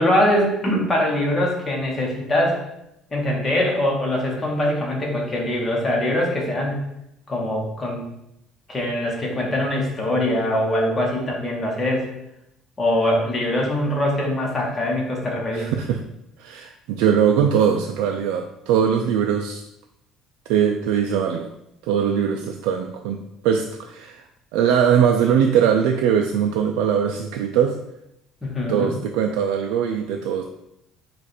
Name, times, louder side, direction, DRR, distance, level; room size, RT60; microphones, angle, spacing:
voice 1, 0.0-2.6 3.1-6.8 7.3-8.1 8.7-12.1 12.8-15.7 28.4-28.9, left 1 dB, 20° left, -2 dB, 1.2 m, -22 dB
voice 2, 15.5-16.0 16.4-19.6 20.5-21.5 21.8-24.2 24.5-27.8 28.7-30.4, right 8 dB, 90° right, 3 dB, 0.3 m, -21 dB
4.8 x 2.5 x 4.2 m, 0.83 s
cardioid pair, 135°, 0 cm